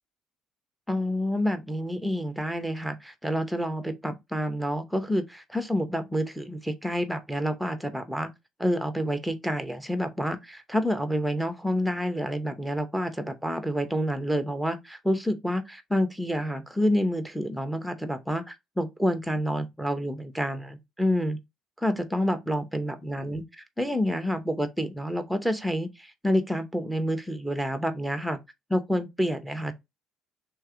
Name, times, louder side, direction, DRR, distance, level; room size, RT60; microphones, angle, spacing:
voice 1, 0.9-8.3 8.6-21.4 21.8-28.4 28.7-29.7, equal, ahead, 0.7 m, -28 dB
3.3 x 3.1 x 3.7 m
cardioid pair, 140°, 0 cm